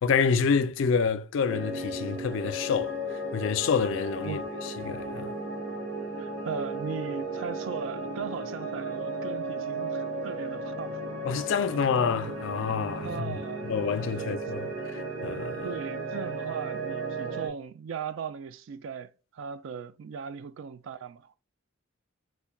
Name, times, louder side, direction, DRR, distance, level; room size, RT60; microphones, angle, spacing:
voice 1, 0.0-5.3 11.3-15.7, left 6 dB, 65° left, 0.3 m, -28 dB
sound 1, 1.5-17.5, right 2 dB, 90° right, 0.9 m, -35 dB
voice 2, 6.2-11.0 13.0-13.7 14.2-14.4 15.6-21.4, right 6 dB, 65° right, 0.3 m, -38 dB
5.5 x 2.1 x 2.3 m
head